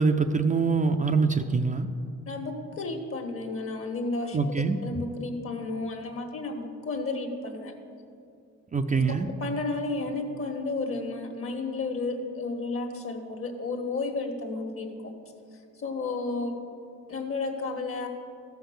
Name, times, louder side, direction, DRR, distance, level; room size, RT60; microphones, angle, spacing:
voice 1, 0.0-1.9 4.3-4.8 8.7-9.3, right 4 dB, 25° right, 6 dB, 0.5 m, -24 dB
voice 2, 2.2-4.4 4.8-7.7 8.9-9.0 9.4-15.1 15.8-16.5 17.1-18.1, left 3 dB, 45° left, 5 dB, 1.6 m, -32 dB
14.0 x 5.8 x 7.2 m, 2.4 s
cardioid pair, 90°, 30 cm